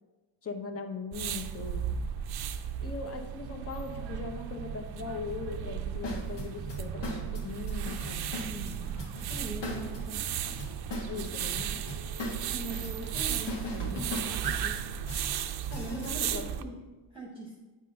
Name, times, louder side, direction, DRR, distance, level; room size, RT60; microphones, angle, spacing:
voice 1, 0.4-1.8 2.5-8.3 11.1-11.9 15.9-16.5, left 4 dB, 30° left, 5 dB, 0.8 m, -40 dB
sound 1, 1.1-16.6, right 9 dB, 60° right, 0.5 m, -35 dB
sound 2, 6.0-16.1, left 2 dB, 70° left, 1.5 m, -40 dB
voice 2, 9.3-10.2 12.4-14.9 15.4-16.8 17.1-17.6, right 1 dB, 10° right, -2 dB, 0.9 m, -42 dB
8.7 x 3.7 x 5.4 m, 1.2 s
cardioid pair, 140°, 45 cm